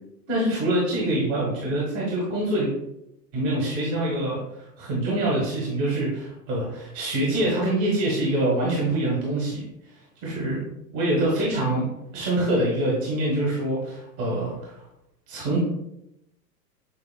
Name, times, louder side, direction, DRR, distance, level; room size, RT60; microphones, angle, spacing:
voice 1, 0.3-2.7 3.3-9.6 10.2-10.6 10.9-11.8 12.1-14.8 15.3-15.6, right 1 dB, 40° right, -4 dB, 1.5 m, -25 dB
7.0 x 2.4 x 2.2 m, 0.83 s
hypercardioid pair, 120°, 49 cm